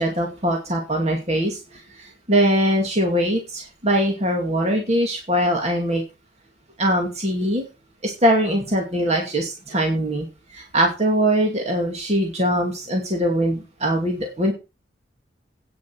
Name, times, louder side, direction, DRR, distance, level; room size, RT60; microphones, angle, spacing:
voice 1, 0.0-6.0 6.8-7.6 8.0-10.3 10.5-14.5, equal, 35° right, 1 dB, 2.4 m, -22 dB
9.5 x 7.3 x 6.3 m, 0.29 s
head